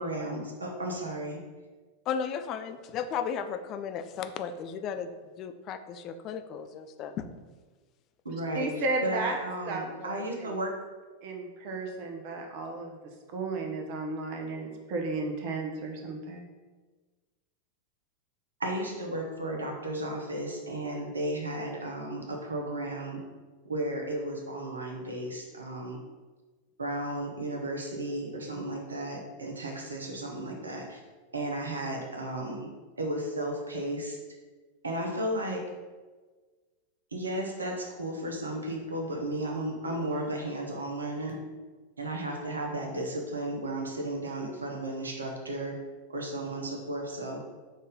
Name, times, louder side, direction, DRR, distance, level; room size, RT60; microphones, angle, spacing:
voice 1, 0.0-1.4 8.2-10.7 18.6-23.2 23.6-26.0 26.8-31.0 31.3-32.7 33.0-34.2 34.8-35.7 37.1-41.4 42.0-45.8 46.1-47.4, right 1 dB, 75° right, 2 dB, 0.7 m, -34 dB
voice 2, 2.1-5.1 5.4-7.3, left 7 dB, 35° left, 8 dB, 0.3 m, -35 dB
voice 3, 8.5-9.4 9.7-10.6 11.2-13.0 13.3-16.4, right 2 dB, 45° right, 3 dB, 0.7 m, -34 dB
5.2 x 2.6 x 3.7 m, 1.3 s
figure-of-eight pair, 90°, 0 cm